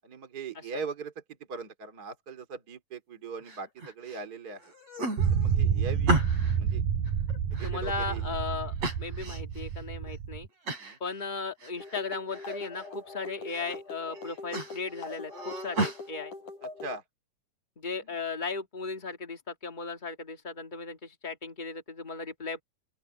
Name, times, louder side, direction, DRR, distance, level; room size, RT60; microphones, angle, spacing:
voice 1, 0.0-1.1 1.5-4.6 5.3-6.2 6.6-6.8 7.5-8.3 10.8-11.0 16.6-17.0, right 4 dB, 30° right, 2.7 m, -40 dB
sound 1, 3.5-4.2 4.6-6.6 7.1-8.3 8.8-9.6 10.1-10.2 10.7-11.0 11.3-12.0 12.3-12.9 13.3-13.8 14.1-16.0, right 2 dB, 50° right, 7.5 m, -34 dB
sound 2, 5.2-10.5, right 7 dB, 90° right, 3.9 m, -29 dB
voice 2, 7.6-10.5 11.0-16.3 17.8-22.6, left 4 dB, 85° left, 0.4 m, -36 dB
sound 3, 11.8-17.0, left 3 dB, 65° left, 8.4 m, -43 dB
open air
omnidirectional pair, 3.9 m